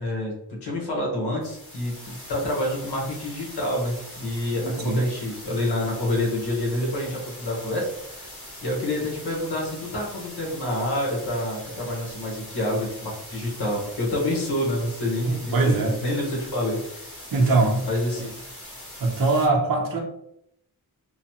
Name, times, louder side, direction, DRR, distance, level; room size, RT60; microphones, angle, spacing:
voice 1, 0.0-7.9 8.2-8.3 8.6-16.8 17.6-18.3, left 1 dB, 85° left, -2 dB, 1.2 m, -28 dB
sound 1, 1.4-19.5, left 1 dB, 35° left, 1.0 m, -42 dB
voice 2, 4.6-5.0 15.3-16.0 17.3-17.8 19.0-20.0, right 3 dB, 60° right, 0 dB, 0.7 m, -22 dB
3.1 x 2.0 x 2.8 m, 0.75 s
wide cardioid pair, 175°, 39 cm